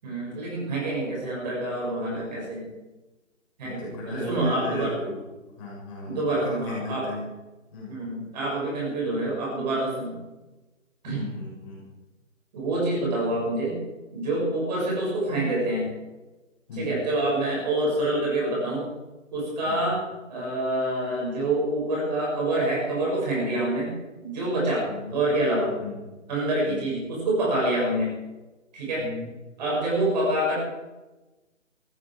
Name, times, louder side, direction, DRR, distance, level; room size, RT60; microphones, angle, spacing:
voice 1, 0.0-2.7 3.6-4.9 6.1-7.0 7.9-10.2 11.0-11.2 12.5-13.8 14.1-15.9 16.7-18.8 19.3-20.0 20.3-23.9 24.2-25.7 26.3-28.2 28.7-29.1 29.6-30.5, right 1 dB, 30° right, -4 dB, 7.0 m, -26 dB
voice 2, 3.6-5.2 5.6-7.3 7.7-8.0 11.0-11.8 16.7-17.0 19.6-19.9 24.9-25.2 25.8-26.0 26.6-26.8 29.0-29.3, left 2 dB, 25° left, -5 dB, 7.3 m, -36 dB
15.5 x 15.0 x 5.0 m, 1.1 s
figure-of-eight pair, 145°, 39 cm